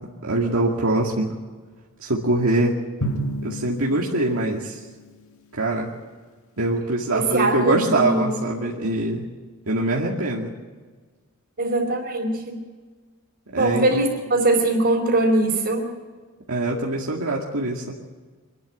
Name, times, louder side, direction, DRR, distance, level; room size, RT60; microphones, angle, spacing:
voice 1, 0.2-1.3 2.0-2.8 3.4-4.8 5.6-5.9 6.6-9.3 9.7-10.5 13.5-13.9 16.5-17.9, right 2 dB, 70° right, -2 dB, 2.2 m, -23 dB
Drum, 3.0-5.2, right 1 dB, 70° left, 1.8 m, -31 dB
voice 2, 7.1-8.4 11.6-12.6 13.5-15.9, right 2 dB, 50° right, -6 dB, 3.9 m, -21 dB
25.0 x 12.0 x 9.1 m, 1.4 s
head